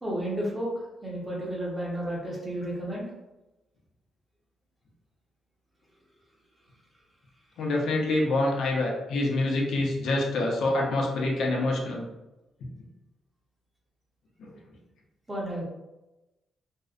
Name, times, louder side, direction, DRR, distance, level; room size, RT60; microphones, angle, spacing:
voice 1, 0.0-3.1 15.3-15.6, right 1 dB, 15° right, -5 dB, 0.7 m, -32 dB
voice 2, 7.6-12.0 14.4-14.5, left 2 dB, 75° left, -1 dB, 0.6 m, -26 dB
2.5 x 2.1 x 2.4 m, 0.99 s
cardioid pair, 130°, 0 cm